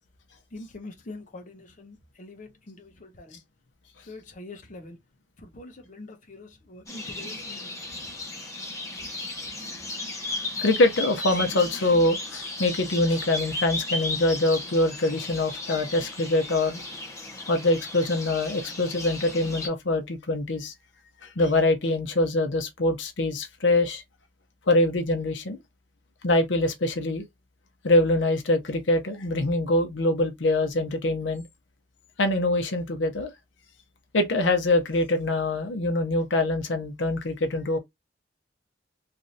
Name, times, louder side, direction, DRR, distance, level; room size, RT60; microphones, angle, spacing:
voice 1, 0.5-3.4 4.0-5.0 5.4-7.7, left 2 dB, 45° left, 0.7 m, -44 dB
sound 1, 6.9-19.7, left 2 dB, 15° left, 0.9 m, -35 dB
voice 2, 10.6-16.8 17.5-20.7 21.2-24.0 24.7-25.6 26.2-27.2 27.8-31.4 32.2-33.3 34.1-37.8, left 2 dB, 85° left, 0.7 m, -24 dB
3.2 x 2.6 x 2.6 m
head